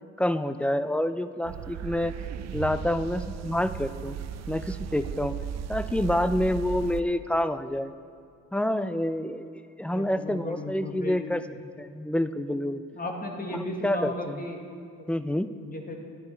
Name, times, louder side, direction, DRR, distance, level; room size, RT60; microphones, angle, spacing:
voice 1, 0.2-2.1 2.5-4.2 4.5-5.4 5.7-7.9 8.5-11.4 11.8-12.8 13.8-14.4 15.1-15.5, left 1 dB, 5° left, 12 dB, 0.3 m, -28 dB
sound 1, 1.4-7.0, right 9 dB, 60° right, 0.5 m, -36 dB
voice 2, 9.9-11.6 12.9-14.6 14.9-15.0 15.6-16.0, left 1 dB, 30° left, 2 dB, 1.7 m, -35 dB
11.0 x 9.8 x 4.3 m, 2.5 s
cardioid pair, 90°, 30 cm